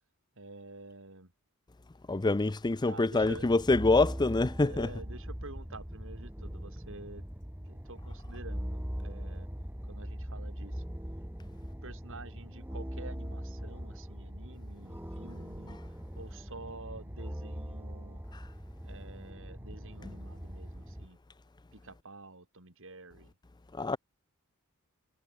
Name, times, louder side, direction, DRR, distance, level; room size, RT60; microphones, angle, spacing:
voice 1, 0.4-1.3 2.9-3.5 4.6-7.2 7.6-9.5 9.8-10.8 11.8-15.8 16.2-18.2 18.8-21.2 21.7-23.3, right 2 dB, 65° right, 4.4 m, -49 dB
voice 2, 2.1-4.9 18.3-18.4 23.7-24.0, left 2 dB, 20° left, 0.5 m, -26 dB
sound 1, 3.2-21.1, equal, 10° right, 1.8 m, -41 dB
head